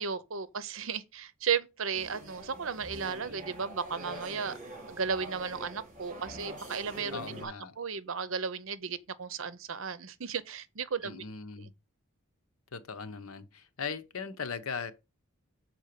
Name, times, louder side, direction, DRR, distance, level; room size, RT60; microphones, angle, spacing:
voice 1, 0.0-4.6 4.9-11.2 11.6-11.7, right 6 dB, 70° right, 0.8 m, -35 dB
sound 1, 1.9-7.5, right 1 dB, 35° right, 3.8 m, -44 dB
voice 2, 7.1-7.8 11.0-11.7 12.7-14.9, left 5 dB, 90° left, 0.9 m, -39 dB
6.8 x 4.5 x 6.7 m
head